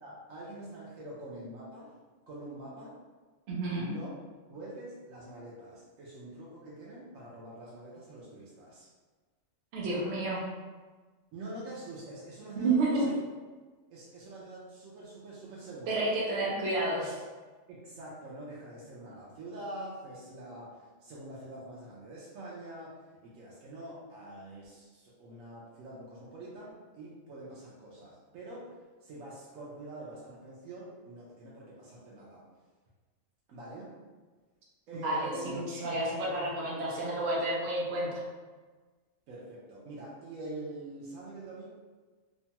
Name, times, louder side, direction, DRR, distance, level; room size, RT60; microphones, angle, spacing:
voice 1, 0.0-1.9 2.3-3.0 3.7-4.1 4.5-8.9 11.3-13.2 13.9-16.1 17.7-32.5 33.5-34.0 34.9-35.6 39.3-41.7, right 1 dB, 90° right, -6 dB, 1.0 m, -45 dB
voice 2, 3.5-3.9 9.7-10.4 12.6-13.0 15.9-17.1 35.0-38.2, right 2 dB, 60° right, -5 dB, 0.9 m, -30 dB
3.0 x 2.2 x 2.8 m, 1.4 s
omnidirectional pair, 1.4 m